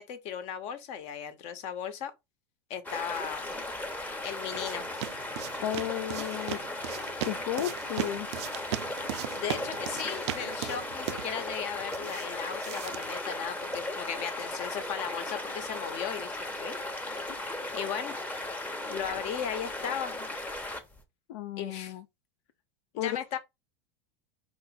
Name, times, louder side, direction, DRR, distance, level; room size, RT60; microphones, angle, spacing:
voice 1, 0.0-2.1 2.7-3.6 4.2-4.9 9.3-17.4 17.7-18.2 18.9-20.1 21.6-21.9 22.9-23.4, left 8 dB, 50° left, 1.1 m, -37 dB
sound 1, 2.9-21.0, left 2 dB, 10° left, 0.9 m, -36 dB
sound 2, 3.9-13.9, right 13 dB, 80° right, 0.4 m, -39 dB
voice 2, 5.6-6.6 7.2-8.3 21.3-22.0 23.0-23.4, left 12 dB, 70° left, 0.5 m, -33 dB
4.7 x 2.5 x 4.1 m
supercardioid pair, 125°, 14 cm